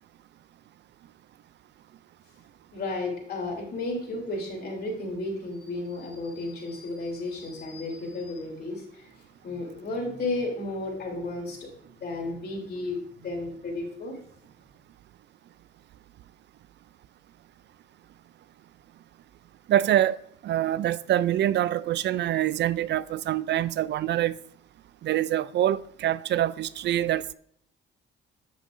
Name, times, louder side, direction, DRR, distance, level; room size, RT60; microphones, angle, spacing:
voice 1, 2.7-9.1 9.4-11.7 11.9-14.2, left 2 dB, 55° left, 3.3 m, -33 dB
voice 2, 19.7-20.2 20.4-24.3 25.0-27.3, right 12 dB, 60° right, 0.4 m, -25 dB
9.2 x 7.7 x 2.6 m
cardioid pair, 90°, 20 cm